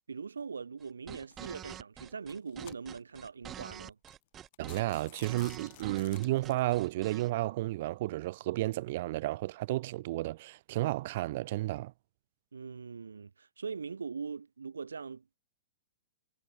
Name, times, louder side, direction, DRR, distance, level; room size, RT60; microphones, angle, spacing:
voice 1, 0.1-4.0 12.5-15.4, right 5 dB, 90° right, 0.5 m, -41 dB
sound 1, 0.8-7.3, right 10 dB, 25° right, 1.1 m, -47 dB
sound 2, 1.3-1.6 2.2-3.2 3.7-3.8 4.1-4.2 4.5-6.7, left 19 dB, 50° left, 4.4 m, -53 dB
voice 2, 4.6-11.9, right 17 dB, 55° right, 1.0 m, -32 dB
hypercardioid pair, 125°, 0 cm